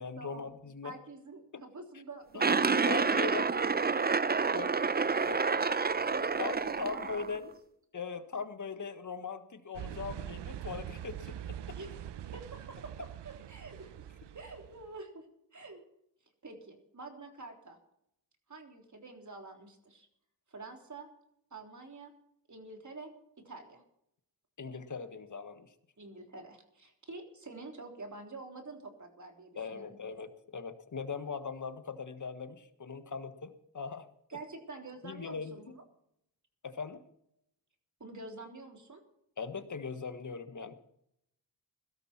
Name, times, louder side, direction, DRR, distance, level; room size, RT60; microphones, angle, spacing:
voice 1, 0.0-0.9 1.5-1.6 2.3-2.4 2.9-3.5 4.5-4.7 5.3-5.6 6.4-7.4 7.9-11.8 24.6-25.7 29.5-34.1 35.0-35.8 36.6-37.0 39.4-40.7, left 5 dB, 45° left, 10 dB, 1.6 m, -40 dB
voice 2, 0.8-4.1 5.0-7.5 11.7-12.1 12.3-13.9 14.3-15.3 15.5-15.8 16.4-17.8 18.5-20.1 20.5-21.1 21.5-22.1 22.5-23.8 26.0-30.0 34.3-35.8 38.0-39.0, right 3 dB, 40° right, 3 dB, 3.5 m, -47 dB
sound 1, 2.4-7.4, right 4 dB, 20° right, 0.6 m, -29 dB
sound 2, 9.7-14.9, right 11 dB, 70° right, 0.8 m, -43 dB
16.5 x 13.0 x 4.4 m, 0.77 s
cardioid pair, 50°, 42 cm